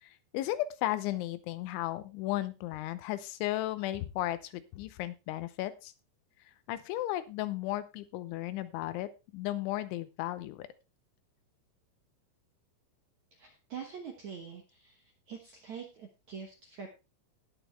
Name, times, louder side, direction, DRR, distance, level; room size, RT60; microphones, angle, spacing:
voice 1, 0.0-5.9 6.7-10.7, left 15 dB, 85° left, 13 dB, 3.2 m, -35 dB
voice 2, 13.3-16.9, right 6 dB, 70° right, 2 dB, 1.8 m, -45 dB
18.5 x 6.3 x 3.3 m, 0.27 s
omnidirectional pair, 5.4 m